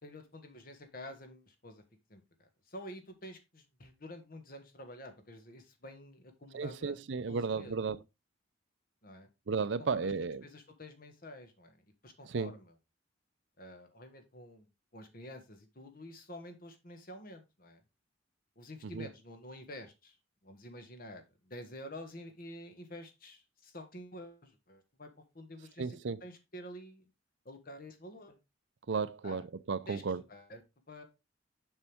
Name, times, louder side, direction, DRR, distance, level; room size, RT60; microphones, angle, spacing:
voice 1, 0.0-1.8 2.1-7.0 7.3-7.8 9.0-9.3 9.9-10.1 10.4-11.8 12.0-12.7 13.6-14.7 14.9-17.8 18.5-20.2 20.4-27.0 27.4-28.4 29.2-29.4 29.9-30.6 30.9-31.0, left 1 dB, 50° left, 1.6 m, -49 dB
voice 2, 6.5-8.0 9.5-10.4 12.3-12.5 18.8-19.1 25.8-26.2 28.9-30.2, right 5 dB, 65° right, 0.5 m, -34 dB
7.2 x 5.3 x 3.5 m
head